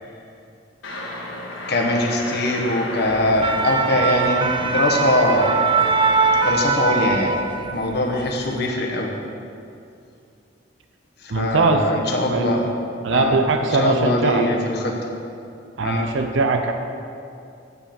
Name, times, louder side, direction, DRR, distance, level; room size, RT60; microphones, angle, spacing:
sound 1, 0.8-6.5, left 1 dB, 80° left, 1.5 m, -33 dB
voice 1, 1.7-5.6 6.4-7.3 7.7-9.1 11.2-12.7 13.1-13.4 13.7-15.0 15.8-16.1, left 1 dB, 60° left, 1 dB, 1.1 m, -22 dB
sound 2, 3.2-7.9 8.3-8.5, right 4 dB, 25° right, 0.3 m, -21 dB
voice 2, 11.3-11.8 12.3-12.5 13.0-14.5 15.8-16.7, right 3 dB, 70° right, 6 dB, 0.6 m, -20 dB
8.5 x 5.4 x 7.3 m, 2.5 s
head